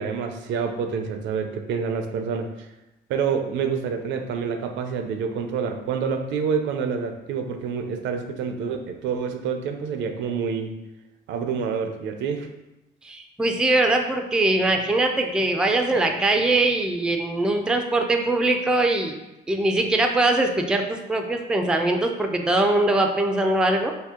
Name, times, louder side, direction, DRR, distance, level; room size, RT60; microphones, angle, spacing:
voice 1, 0.0-2.7 3.1-10.7 11.3-12.5, right 6 dB, 80° right, 6 dB, 0.5 m, -27 dB
voice 2, 13.0-19.1 19.5-23.9, right 2 dB, 5° right, 4 dB, 0.3 m, -22 dB
2.7 x 2.7 x 3.6 m, 0.98 s
cardioid pair, 95°, 19 cm